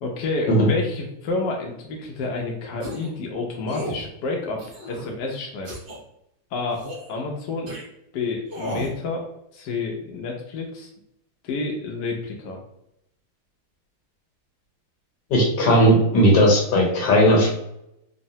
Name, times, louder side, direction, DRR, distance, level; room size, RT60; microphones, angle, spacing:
voice 1, 0.0-4.6 4.9-5.7 6.5-7.7 8.1-9.2 9.5-10.9 11.4-12.6, left 3 dB, 75° left, 0 dB, 1.0 m, -29 dB
sound 1, 2.8-3.1 3.7-4.0 4.6-5.1 5.6-6.0 6.7-7.1 7.7-7.8 8.5-8.9, equal, 60° right, 0.5 m, -34 dB
voice 2, 15.3-17.5, equal, 60° left, -1 dB, 1.4 m, -17 dB
3.6 x 2.0 x 2.7 m, 0.80 s
omnidirectional pair, 2.3 m